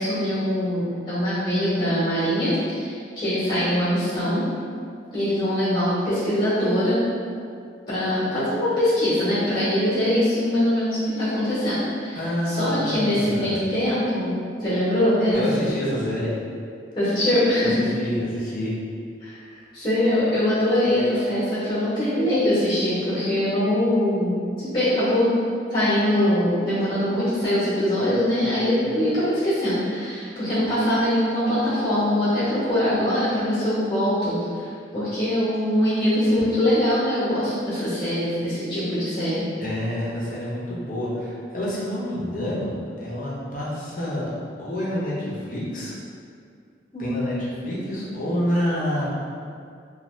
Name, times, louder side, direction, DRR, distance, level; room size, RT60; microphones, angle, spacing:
voice 1, 0.0-4.4 5.1-7.0 7.9-14.3 14.6-15.4 16.9-17.8 19.2-19.4 19.7-25.4 25.7-39.5 46.9-47.4, left 1 dB, 20° left, -12 dB, 0.9 m, -23 dB
voice 2, 12.1-13.6 15.3-16.3 17.8-18.7 39.6-44.3 44.6-46.0 47.0-49.1, equal, 45° left, -7 dB, 0.6 m, -28 dB
2.6 x 2.2 x 3.1 m, 2.3 s
head